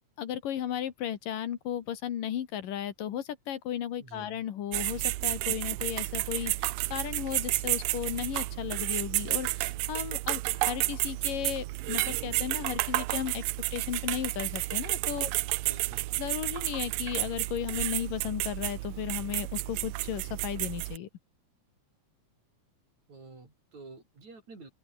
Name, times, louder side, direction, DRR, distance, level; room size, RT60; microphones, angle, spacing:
voice 1, 0.2-13.4 13.7-15.3 16.2-21.1, left 10 dB, 75° left, 3.3 m, -35 dB
voice 2, 4.0-4.3 15.1-16.1 23.1-24.7, right 3 dB, 55° right, 8.3 m, -49 dB
sound 1, 4.7-21.0, right 20 dB, 80° right, 2.2 m, -31 dB
open air
omnidirectional pair, 4.0 m